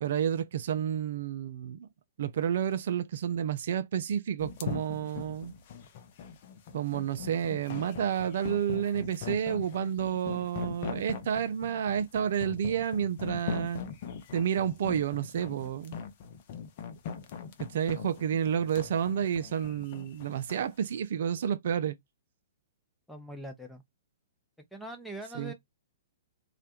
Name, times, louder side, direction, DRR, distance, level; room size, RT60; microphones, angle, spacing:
voice 1, 0.0-1.9 2.2-5.5 6.7-13.8 14.3-16.0 17.6-22.0 25.3-25.5, right 8 dB, 60° right, 0.4 m, -30 dB
sound 1, 4.4-20.7, left 7 dB, 50° left, 0.6 m, -41 dB
voice 2, 23.1-23.8 24.7-25.5, right 1 dB, ahead, 0.7 m, -42 dB
2.4 x 2.1 x 2.7 m
hypercardioid pair, 120°, 0 cm